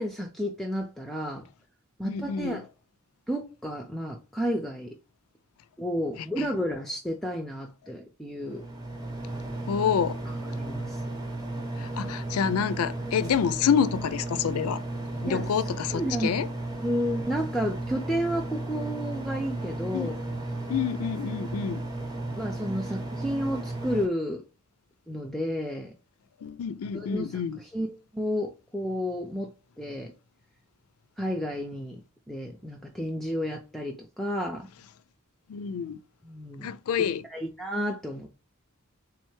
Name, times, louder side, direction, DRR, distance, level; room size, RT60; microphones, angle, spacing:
voice 1, 0.0-1.4 2.0-2.7 3.3-4.9 5.8-8.6 10.3-11.0 15.3-15.5 15.9-16.3 16.8-20.2 22.4-24.4 25.1-25.9 26.9-29.5 29.8-30.1 31.2-32.0 32.3-34.7 36.2-36.7 37.3-38.3, equal, ahead, 0.3 m, -31 dB
voice 2, 2.0-2.6 6.2-6.5 9.7-10.2 11.8-14.8 15.2-16.5 19.9-20.2 20.7-21.8 26.4-27.6 35.5-36.0 36.6-37.3, left 7 dB, 80° left, 0.4 m, -28 dB
sound 1, 8.4-24.1, right 2 dB, 15° right, 0.7 m, -34 dB
3.5 x 3.2 x 3.1 m
head